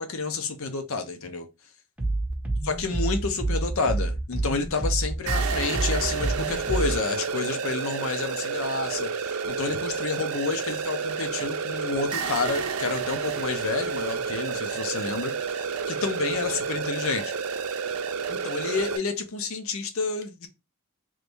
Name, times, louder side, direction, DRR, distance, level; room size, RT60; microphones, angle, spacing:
voice 1, 0.0-1.5 2.6-17.3 18.3-20.5, left 4 dB, 65° left, 0.7 m, -30 dB
sound 1, 2.0-7.0, right 2 dB, 5° right, 0.7 m, -28 dB
sound 2, 5.3-19.0, right 6 dB, 70° right, 0.5 m, -30 dB
3.1 x 2.6 x 3.3 m
head